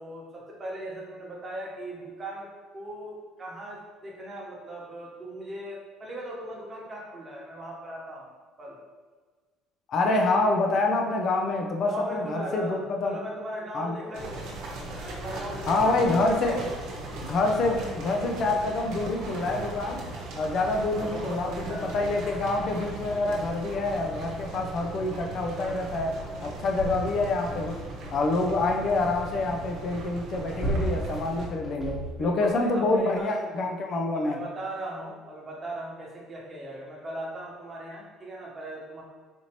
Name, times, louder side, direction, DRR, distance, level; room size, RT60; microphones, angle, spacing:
voice 1, 0.0-8.3 8.6-8.8 11.9-14.5 15.0-16.2 16.6-16.7 20.9-22.1 32.2-33.7 34.1-39.0, right 1 dB, 30° right, -3 dB, 1.0 m, -38 dB
voice 2, 9.9-13.2 13.7-14.0 15.7-16.7 17.2-20.1 20.3-27.8 28.1-34.4, left 2 dB, 50° left, 3 dB, 0.5 m, -27 dB
sound 1, 14.1-31.5, right 2 dB, 75° right, 0.9 m, -38 dB
sound 2, 26.8-27.8 30.1-32.5 33.2-33.3, right 1 dB, 15° left, 1.0 m, -34 dB
4.3 x 2.8 x 3.0 m, 1.4 s
cardioid pair, 105°, 0 cm